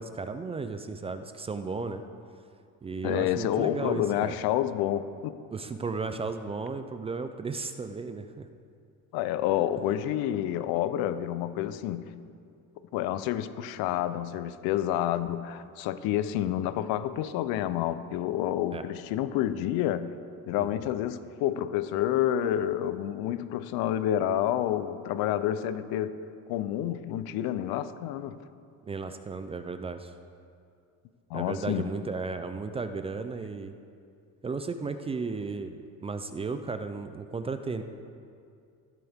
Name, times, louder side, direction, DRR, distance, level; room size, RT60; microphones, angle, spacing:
voice 1, 0.0-2.0 2.8-4.3 5.5-8.5 18.7-18.9 20.5-20.8 28.9-30.1 31.3-33.7 34.4-37.8, right 4 dB, 15° right, 9 dB, 0.3 m, -34 dB
voice 2, 3.0-5.4 9.1-12.1 12.9-20.1 20.5-26.2 26.5-28.4 31.3-31.9, left 11 dB, 90° left, 14 dB, 0.7 m, -29 dB
14.5 x 12.5 x 3.6 m, 2.4 s
cardioid pair, 145°, 36 cm